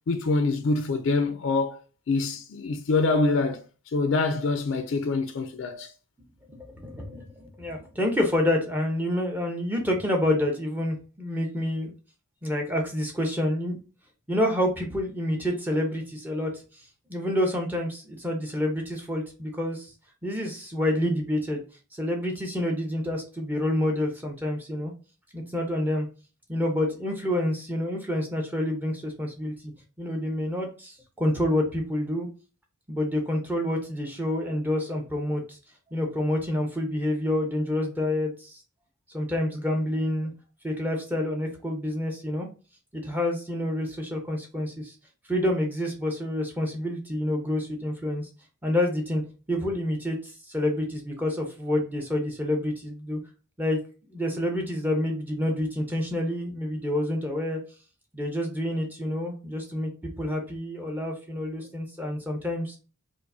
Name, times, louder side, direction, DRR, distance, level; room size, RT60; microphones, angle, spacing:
voice 1, 0.1-1.8 2.1-3.6 3.9-5.9, left 3 dB, 65° left, 0.4 m, -25 dB
voice 2, 6.5-11.9 12.4-13.8 14.3-16.5 16.8-19.9 20.2-21.6 22.0-24.9 25.3-26.1 26.5-29.7 30.0-32.3 32.9-35.6 35.9-38.6 39.1-40.3 40.6-42.5 42.9-44.9 45.3-48.3 48.6-49.2 49.5-53.2 53.6-53.8 54.1-57.6 58.1-59.9 60.2-62.8, left 1 dB, 10° right, 0.7 m, -28 dB
4.7 x 2.0 x 2.6 m
head